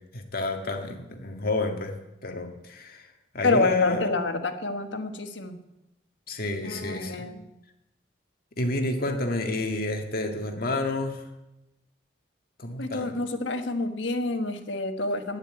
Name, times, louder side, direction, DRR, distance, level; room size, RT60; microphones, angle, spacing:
voice 1, 0.1-1.9 2.2-3.1 3.3-4.1 6.3-7.2 8.6-11.2 12.6-13.2, left 2 dB, 55° left, 4 dB, 1.9 m, -29 dB
voice 2, 3.4-5.6 6.6-7.5 12.8-15.4, left 2 dB, 90° left, 7 dB, 1.4 m, -28 dB
12.0 x 9.7 x 9.0 m, 0.93 s
head